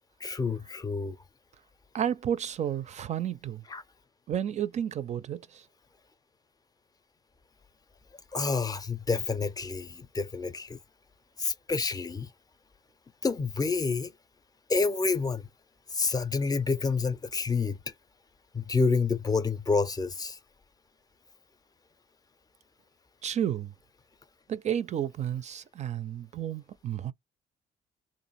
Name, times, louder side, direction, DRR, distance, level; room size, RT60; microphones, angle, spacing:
voice 1, 0.2-1.2 3.7-3.8 8.3-10.8 11.4-12.3 13.2-14.1 14.7-15.5 15.9-17.9 18.5-20.4, left 4 dB, 20° left, 0.5 m, -28 dB
voice 2, 1.9-3.6 4.3-5.6 23.2-23.7 24.5-27.1, right 10 dB, 45° right, 0.4 m, -31 dB
3.0 x 2.4 x 4.0 m
cardioid pair, 110°, 17 cm